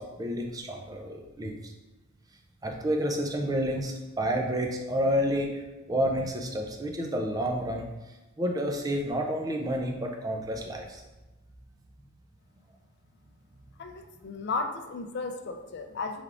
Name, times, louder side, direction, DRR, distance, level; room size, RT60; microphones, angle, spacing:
voice 1, 0.0-1.5 2.6-5.5 5.9-7.9 8.4-11.0, equal, 20° right, 2 dB, 0.4 m, -29 dB
voice 2, 13.8-16.2, left 3 dB, 55° left, 6 dB, 0.4 m, -34 dB
3.5 x 3.4 x 3.6 m, 1.1 s
head